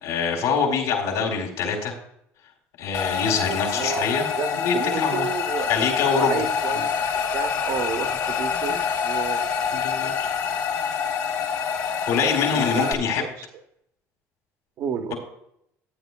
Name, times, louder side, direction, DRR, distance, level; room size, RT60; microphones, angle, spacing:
voice 1, 0.0-2.0 2.8-4.3 4.6-5.3 5.7-6.4 6.7-6.8 8.5-8.8 9.7-10.3 12.1-13.2, left 6 dB, 80° left, 1 dB, 3.8 m, -25 dB
sound 1, 2.9-12.9, left 6 dB, 55° left, 1.4 m, -26 dB
voice 2, 3.2-4.0 4.4-5.7 6.1-6.9 7.3-9.5 12.5-13.5 14.8-15.1, right 6 dB, 60° right, 5 dB, 1.3 m, -31 dB
14.5 x 9.3 x 2.3 m, 0.72 s
supercardioid pair, 80°, 7 cm